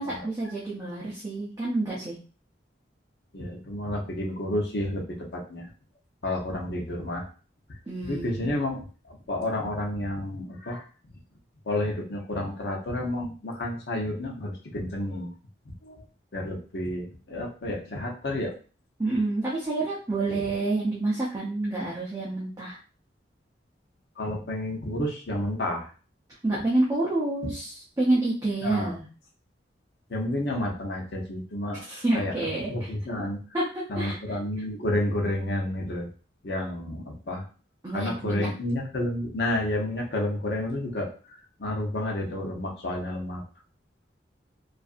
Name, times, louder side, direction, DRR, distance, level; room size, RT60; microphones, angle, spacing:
voice 1, 0.0-2.2 7.9-8.5 19.0-22.8 26.4-29.1 31.9-32.9 33.5-34.4 37.8-38.5, right 2 dB, 20° right, -7 dB, 0.5 m, -28 dB
voice 2, 3.3-5.7 6.2-7.3 8.0-10.9 11.7-15.3 15.8-16.0 16.3-18.5 20.2-20.4 24.2-25.9 28.6-29.0 30.1-31.8 32.1-32.3 32.7-33.4 33.9-36.1 36.4-37.4 37.9-43.4, left 1 dB, 65° left, 0 dB, 0.7 m, -30 dB
2.6 x 2.4 x 2.4 m, 0.37 s
head